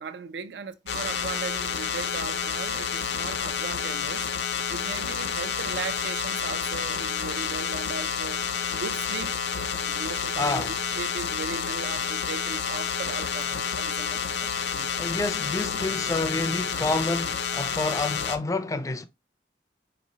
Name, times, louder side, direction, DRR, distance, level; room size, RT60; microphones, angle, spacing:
voice 1, 0.0-4.3 4.7-8.4 8.7-9.3 9.8-14.9, right 5 dB, 70° right, 0.4 m, -37 dB
sound 1, 0.9-18.4, left 7 dB, 70° left, 0.5 m, -29 dB
voice 2, 10.4-10.7 14.1-14.2 15.0-19.1, left 2 dB, 20° left, 0.4 m, -28 dB
4.5 x 3.0 x 2.7 m
head